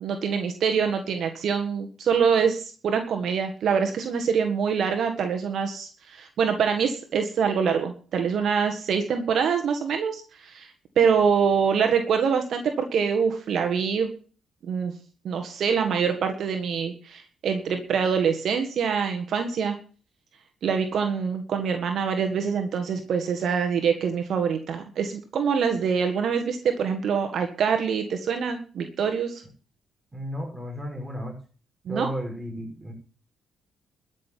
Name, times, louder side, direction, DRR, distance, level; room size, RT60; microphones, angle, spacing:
voice 1, 0.0-10.7 11.0-14.1 14.6-14.9 15.3-19.8 20.6-29.4 31.9-32.1, right 6 dB, 65° right, 5 dB, 1.7 m, -25 dB
voice 2, 30.1-31.4 31.9-32.9, equal, 15° right, 1 dB, 6.6 m, -33 dB
13.0 x 6.4 x 9.2 m, 0.41 s
cardioid pair, 90°, 0 cm